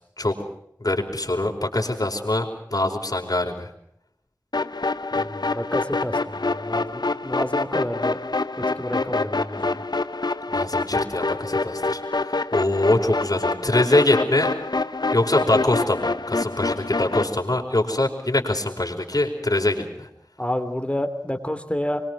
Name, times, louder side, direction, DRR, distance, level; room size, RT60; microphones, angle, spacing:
voice 1, 0.8-3.7 10.5-14.5 15.1-20.1, left 2 dB, 60° left, 1 dB, 4.9 m, -23 dB
sound 1, 4.5-17.3, left 3 dB, 80° left, 0.9 m, -26 dB
voice 2, 5.1-8.2 8.7-9.8 20.4-22.0, left 1 dB, 15° left, 7 dB, 3.2 m, -29 dB
25.5 x 22.5 x 6.1 m, 0.72 s
wide cardioid pair, 40°, 7 cm